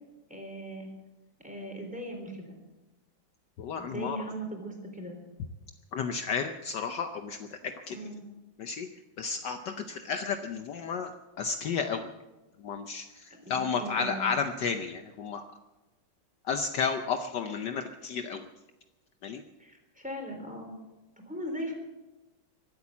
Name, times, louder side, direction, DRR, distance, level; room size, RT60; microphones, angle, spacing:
voice 1, 0.3-0.9 1.4-2.6 3.8-5.2 7.9-8.2 13.3-14.3 19.6-20.8 21.3-21.7, right 1 dB, 5° right, 2 dB, 3.6 m, -39 dB
voice 2, 3.6-4.2 5.9-8.0 8.6-8.9 9.2-11.1 11.4-12.1 12.6-15.4 16.5-18.5 19.2-19.4, left 5 dB, 65° left, 7 dB, 1.3 m, -32 dB
23.5 x 8.5 x 7.1 m, 1.1 s
omnidirectional pair, 2.2 m